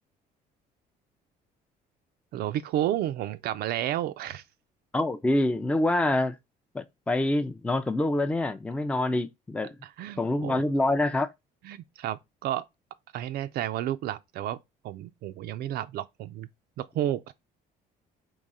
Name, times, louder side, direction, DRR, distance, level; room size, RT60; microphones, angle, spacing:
voice 1, 2.3-4.4 9.8-10.6 11.6-12.6 13.1-14.6 14.8-16.5 16.8-17.3, right 12 dB, 70° right, 0.4 m, -31 dB
voice 2, 4.9-6.4 6.7-9.8 10.2-11.3, left 1 dB, 5° left, 0.4 m, -26 dB
3.7 x 3.0 x 4.1 m
cardioid pair, 110°, 17 cm